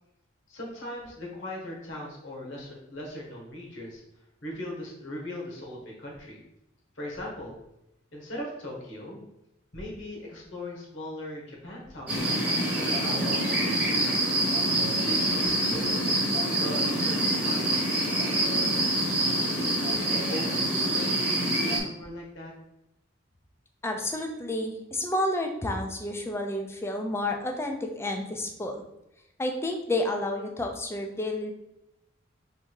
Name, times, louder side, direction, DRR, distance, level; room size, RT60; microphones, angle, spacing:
voice 1, 0.5-4.0 4.4-6.4 6.9-7.5 8.1-9.2 9.7-12.4 12.7-14.4 15.1-16.1 16.5-19.0 19.9-22.5, left 1 dB, 70° left, -2 dB, 1.4 m, -39 dB
sound 1, 12.1-21.8, right 1 dB, 10° right, 1.0 m, -26 dB
voice 2, 23.8-28.8 29.4-31.5, left 1 dB, 15° left, 2 dB, 0.5 m, -30 dB
3.5 x 2.7 x 4.6 m, 0.85 s
head